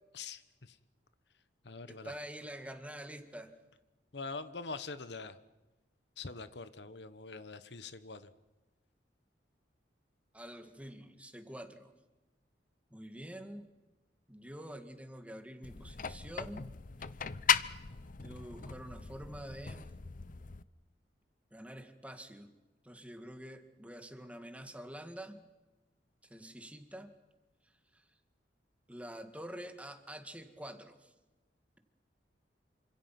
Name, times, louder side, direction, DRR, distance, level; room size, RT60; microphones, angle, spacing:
voice 1, 0.1-0.8 1.6-2.1 4.1-5.4 6.2-8.3, left 4 dB, 70° left, 13 dB, 1.2 m, -44 dB
voice 2, 1.9-3.5 10.3-11.9 12.9-13.7 14.3-16.7 18.2-19.9 21.5-22.5 22.8-25.4 26.3-27.1 27.9-28.0 28.9-31.1, equal, 10° right, 7 dB, 2.0 m, -47 dB
sound 1, 15.6-20.6, left 7 dB, 50° left, 0.8 m, -36 dB
27.5 x 26.0 x 6.0 m, 1.1 s
head